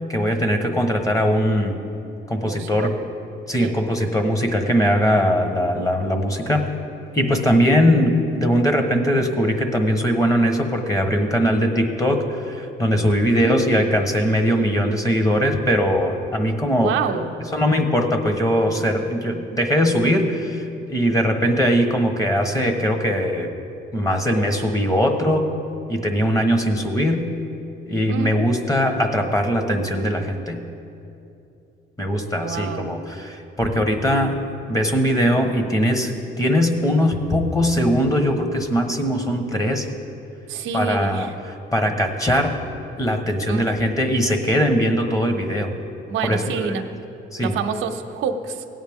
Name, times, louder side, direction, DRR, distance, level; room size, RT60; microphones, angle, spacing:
voice 1, 0.1-1.8 2.3-2.9 3.5-6.7 7.1-17.2 17.5-23.5 23.9-25.4 25.9-27.3 27.9-30.6 32.0-34.4 34.7-39.9 40.7-41.3 41.7-42.6 43.0-45.7 46.3-46.7 47.3-47.5, equal, 15° left, 5 dB, 1.2 m, -20 dB
voice 2, 2.4-2.9 3.6-3.7 13.3-13.7 16.8-17.4 28.1-28.5 32.4-33.0 40.5-41.3 43.5-43.9 46.1-46.8 47.4-48.6, right 6 dB, 90° right, 5 dB, 0.8 m, -28 dB
17.0 x 9.2 x 3.6 m, 2.7 s
cardioid pair, 90°, 20 cm